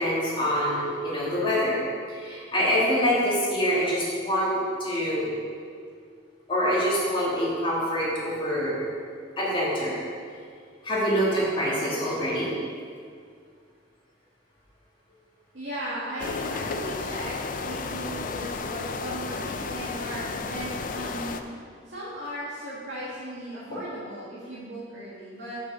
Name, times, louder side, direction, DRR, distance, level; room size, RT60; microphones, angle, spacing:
voice 1, 0.0-1.8 2.2-5.3 6.5-8.9 9.4-10.0 10.8-12.5, equal, 25° left, -6 dB, 1.9 m, -25 dB
voice 2, 15.5-17.3 17.6-21.4 21.8-25.6, equal, 70° right, -9 dB, 1.6 m, -36 dB
sound 1, 16.2-21.4, left 4 dB, 45° left, 0.4 m, -33 dB
6.1 x 6.0 x 6.7 m, 2.2 s
head